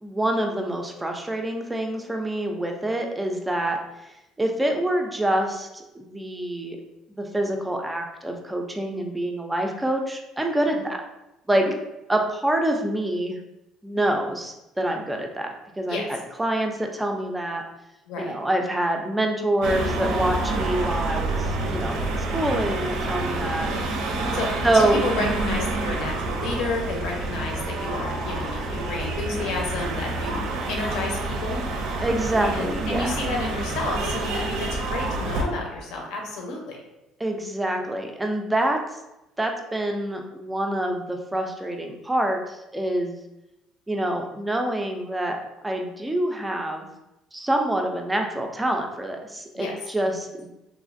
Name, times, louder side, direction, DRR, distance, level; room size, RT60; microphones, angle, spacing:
voice 1, 0.0-6.8 7.2-11.0 11.5-11.6 12.1-13.4 13.8-16.0 16.4-17.6 18.2-23.7 24.6-25.0 32.0-33.1 37.2-39.0 39.4-43.2 43.9-45.4 45.6-46.9 47.3-50.5, right 1 dB, 10° right, 3 dB, 0.3 m, -26 dB
sound 1, 19.6-35.4, right 2 dB, 75° right, 0.5 m, -28 dB
voice 2, 24.7-30.4 30.7-31.6 32.4-36.8 49.6-49.7, left 2 dB, 70° left, 0 dB, 0.7 m, -31 dB
3.0 x 2.4 x 2.5 m, 0.92 s
cardioid pair, 145°, 0 cm